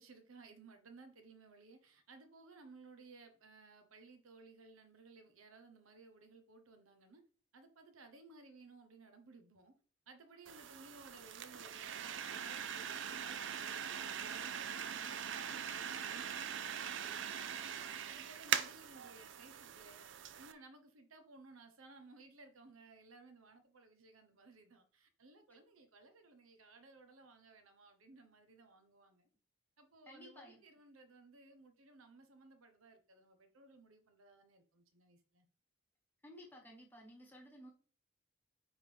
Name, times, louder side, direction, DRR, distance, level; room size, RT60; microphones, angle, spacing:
voice 1, 0.0-7.2 7.5-9.7 10.1-17.7 18.1-20.1 20.4-29.3 29.8-35.5, right 3 dB, 85° right, 1.0 m, -59 dB
sound 1, 10.5-20.5, right 8 dB, 60° right, 0.5 m, -42 dB
voice 2, 30.1-30.6 36.2-37.7, equal, 10° left, 1.2 m, -55 dB
9.6 x 3.7 x 3.4 m
head